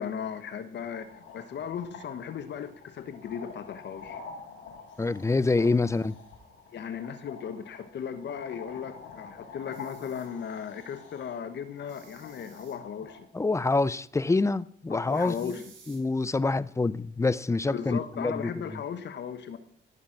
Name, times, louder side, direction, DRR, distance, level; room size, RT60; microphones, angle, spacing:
voice 1, 0.0-4.2 5.6-5.7 6.7-13.3 14.9-15.6 17.7-19.6, left 7 dB, 60° left, 1.2 m, -37 dB
sound 1, 0.7-13.2, left 5 dB, 90° left, 7.0 m, -48 dB
voice 2, 5.0-6.2 13.3-15.5 15.9-18.8, left 3 dB, 15° left, 0.5 m, -26 dB
sound 2, 9.6-10.3 11.8-12.8 15.1-16.0, right 6 dB, 70° right, 5.4 m, -55 dB
17.5 x 7.2 x 5.9 m
cardioid pair, 90°, 20 cm